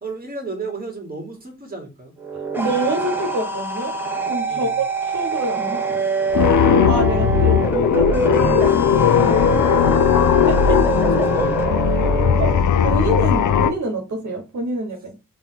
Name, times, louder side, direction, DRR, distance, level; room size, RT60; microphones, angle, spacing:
voice 1, 0.0-2.1 4.5-4.8 7.4-7.6 10.6-12.6, right 3 dB, 30° right, 2 dB, 2.0 m, -34 dB
sound 1, 2.2-12.6, right 4 dB, 5° right, 1.2 m, -25 dB
voice 2, 2.5-3.9 4.3-9.5 10.5-10.8 12.4-15.2, right 1 dB, 65° right, 2 dB, 1.2 m, -27 dB
sound 2, 6.3-13.7, left 8 dB, 70° left, 0.6 m, -17 dB
3.5 x 3.0 x 3.6 m, 0.26 s
supercardioid pair, 45°, 31 cm